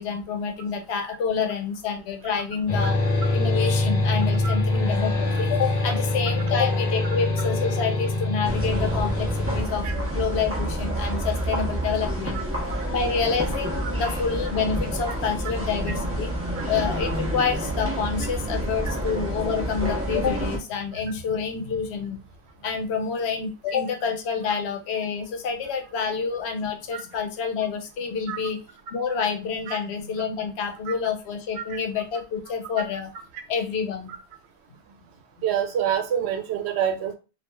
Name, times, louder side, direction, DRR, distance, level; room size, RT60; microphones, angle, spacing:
voice 1, 0.0-3.0 3.3-12.4 12.9-16.3 16.7-22.2 22.6-28.6 28.9-33.1 33.5-34.1, left 6 dB, 90° left, 5 dB, 0.9 m, -28 dB
sound 1, 2.7-9.6, left 2 dB, 45° left, 0.8 m, -24 dB
sound 2, 8.4-20.6, right 1 dB, 15° right, 0.6 m, -28 dB
voice 2, 35.4-37.2, right 9 dB, 90° right, 5 dB, 0.9 m, -27 dB
2.9 x 2.4 x 2.2 m, 0.31 s
omnidirectional pair, 1.1 m